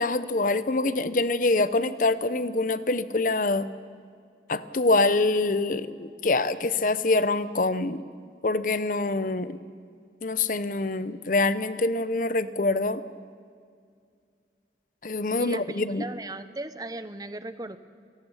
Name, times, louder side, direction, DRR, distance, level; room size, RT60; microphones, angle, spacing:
voice 1, 0.0-3.7 4.5-8.0 8.4-9.6 10.2-13.0 15.0-16.0, left 2 dB, 45° left, 14 dB, 0.7 m, -25 dB
voice 2, 15.4-17.8, right 2 dB, 20° right, 12 dB, 0.7 m, -37 dB
28.5 x 18.0 x 5.6 m, 2.2 s
head